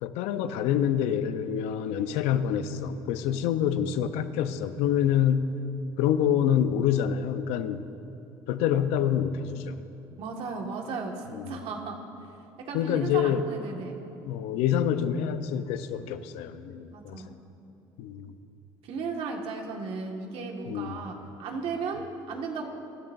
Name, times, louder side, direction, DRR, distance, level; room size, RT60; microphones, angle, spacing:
voice 1, 0.0-5.5 6.0-7.8 8.5-9.8 11.3-11.6 12.7-13.4 14.3-17.2 18.0-18.3 20.7-21.0, left 9 dB, 80° left, 11 dB, 0.7 m, -27 dB
voice 2, 10.2-12.0 12.7-14.0 16.9-17.3 18.8-22.7, right 4 dB, 65° right, 2 dB, 1.8 m, -35 dB
24.5 x 12.5 x 2.6 m, 2.8 s
supercardioid pair, 70°, 11 cm